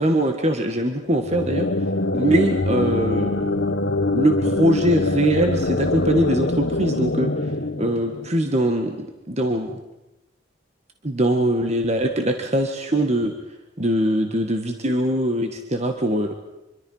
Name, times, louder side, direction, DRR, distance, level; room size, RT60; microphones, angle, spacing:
voice 1, 0.0-1.7 2.1-3.5 4.1-7.5 7.8-9.8 11.0-13.3 13.8-16.3, right 1 dB, 35° right, 5 dB, 1.7 m, -22 dB
sound 1, 1.1-8.7, left 2 dB, 65° left, 1.2 m, -24 dB
25.5 x 24.0 x 5.7 m, 0.98 s
head